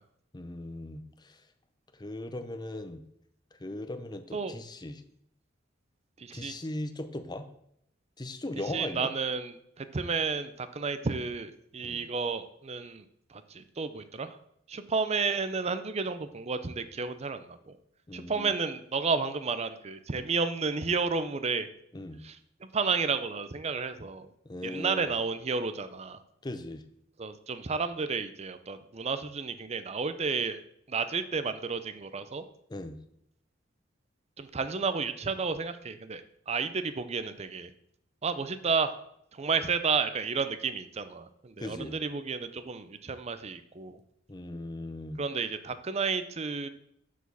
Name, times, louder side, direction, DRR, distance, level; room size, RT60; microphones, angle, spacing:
voice 1, 0.3-1.4 2.0-3.0 3.5-5.0 6.3-7.5 8.2-9.1 11.8-12.0 18.1-18.5 21.9-22.2 24.4-25.1 26.4-26.8 32.7-33.0 41.6-42.0 44.3-45.2, left 1 dB, 20° left, 9 dB, 0.7 m, -38 dB
voice 2, 6.2-6.5 8.7-13.0 13.3-14.4 14.7-17.8 18.1-21.7 22.2-22.4 22.7-24.3 24.6-26.2 27.2-30.6 30.9-32.4 34.4-37.7 38.2-38.9 39.3-44.0 45.2-46.7, right 5 dB, 35° right, 11 dB, 0.5 m, -31 dB
6.1 x 5.0 x 6.8 m, 0.72 s
head